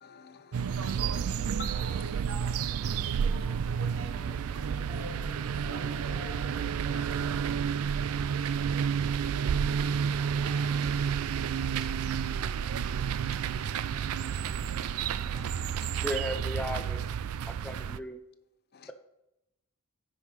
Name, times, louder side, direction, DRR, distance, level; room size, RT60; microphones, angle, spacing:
voice 1, 0.0-0.8 1.6-2.0 10.4-16.1 18.7-18.9, left 6 dB, 45° left, 0.6 m, -51 dB
sound 1, 0.5-18.0, right 7 dB, 80° right, 0.3 m, -30 dB
voice 2, 0.6-10.0, right 4 dB, 60° right, 0.7 m, -47 dB
sound 2, 0.9-7.3, equal, 25° right, 3.3 m, -49 dB
voice 3, 16.0-17.0 17.4-18.2, equal, 5° left, 0.5 m, -35 dB
14.5 x 5.5 x 3.2 m
head